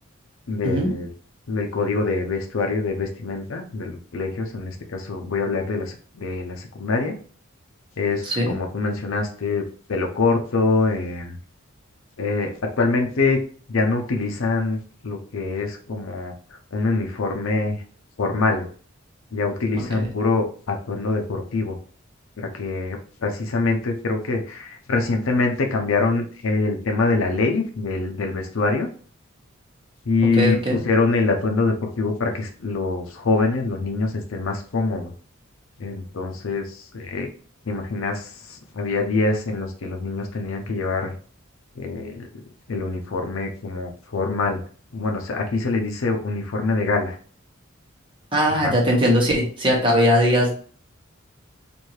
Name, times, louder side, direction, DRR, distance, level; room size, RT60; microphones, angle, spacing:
voice 1, 0.5-1.1 1.5-7.2 8.0-11.4 12.2-13.4 13.7-16.3 16.7-17.8 18.2-18.7 19.3-21.8 22.4-28.9 30.1-30.6 30.8-35.1 35.8-37.3 37.7-41.1 41.8-42.3 42.7-44.6 44.9-47.2 48.5-48.7, left 3 dB, 80° left, 3 dB, 0.6 m, -24 dB
voice 2, 19.7-20.1 30.4-30.8 48.3-50.5, equal, 25° right, -2 dB, 1.2 m, -20 dB
4.6 x 2.6 x 3.1 m, 0.44 s
head